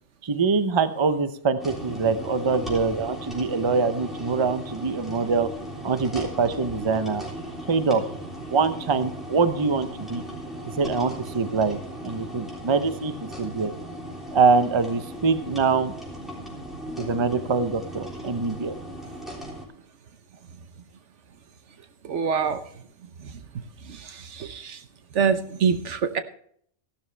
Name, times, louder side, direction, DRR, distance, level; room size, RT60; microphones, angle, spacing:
voice 1, 0.2-5.5 5.8-7.2 7.7-8.0 8.5-10.2 10.8-11.8 12.0-13.7 14.3-15.9 17.0-18.8, right 4 dB, 30° right, 10 dB, 0.7 m, -24 dB
sound 1, 1.6-19.7, right 1 dB, ahead, 3.4 m, -37 dB
voice 2, 22.0-22.6 23.2-23.4 23.8-24.8 25.1-26.2, right 6 dB, 70° right, 9 dB, 1.3 m, -25 dB
14.5 x 12.0 x 3.3 m, 0.63 s
omnidirectional pair, 1.3 m